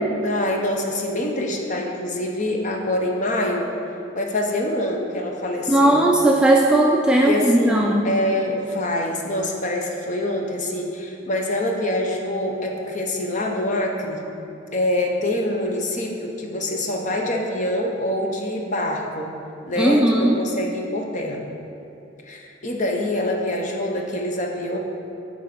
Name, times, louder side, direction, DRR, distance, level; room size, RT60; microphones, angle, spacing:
voice 1, 0.2-3.7 4.1-6.1 7.2-14.2 14.7-19.3 19.7-21.4 22.3-24.8, left 1 dB, 40° left, 1 dB, 0.8 m, -25 dB
voice 2, 5.7-8.0 19.8-20.4, right 1 dB, 5° right, -1 dB, 0.4 m, -17 dB
8.9 x 3.9 x 5.2 m, 2.8 s
head